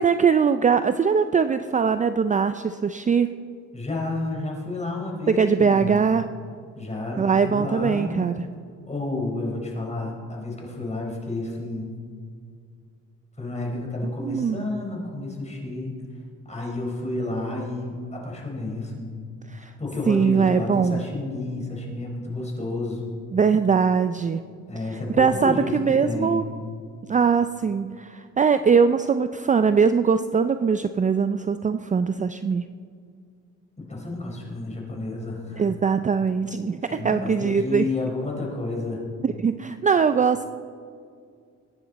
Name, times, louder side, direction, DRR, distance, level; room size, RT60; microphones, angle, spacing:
voice 1, 0.0-3.3 5.4-6.3 7.2-8.5 14.2-14.6 19.5-19.7 20.1-21.0 23.3-24.4 25.2-26.4 27.1-32.6 35.6-37.9 39.2-40.4, right 6 dB, 25° right, 10 dB, 0.4 m, -21 dB
voice 2, 3.7-6.0 6.7-8.3 8.9-12.0 13.4-15.9 16.5-19.1 19.5-23.1 24.7-26.4 33.8-35.6 36.8-39.0, left 2 dB, 20° left, -1 dB, 4.4 m, -31 dB
22.5 x 10.0 x 4.2 m, 2.2 s
cardioid pair, 90°, 30 cm